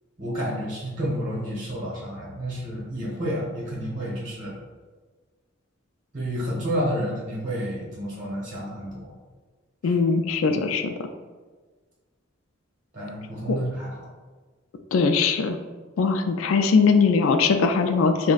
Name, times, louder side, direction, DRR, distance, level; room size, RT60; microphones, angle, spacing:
voice 1, 0.2-4.5 6.1-9.1 9.8-9.9 10.5-10.6 12.9-13.9, equal, 40° right, -6 dB, 1.1 m, -30 dB
voice 2, 9.8-10.9 13.5-13.6 14.9-15.6 16.0-18.3, left 5 dB, 80° left, 6 dB, 0.3 m, -20 dB
6.1 x 2.2 x 2.4 m, 1.4 s
head